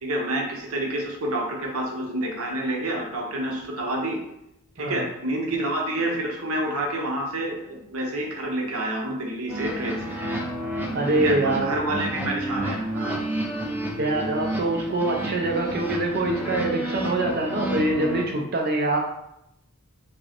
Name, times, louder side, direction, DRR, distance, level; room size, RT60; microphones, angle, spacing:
voice 1, 0.0-4.2 4.8-10.1 11.1-13.2, right 1 dB, 70° right, 0 dB, 0.9 m, -28 dB
sound 1, 9.5-18.2, right 1 dB, 10° right, 0.7 m, -30 dB
voice 2, 10.9-11.7 14.0-19.0, right 2 dB, 45° right, 0 dB, 0.6 m, -24 dB
5.1 x 2.1 x 4.3 m, 0.82 s
head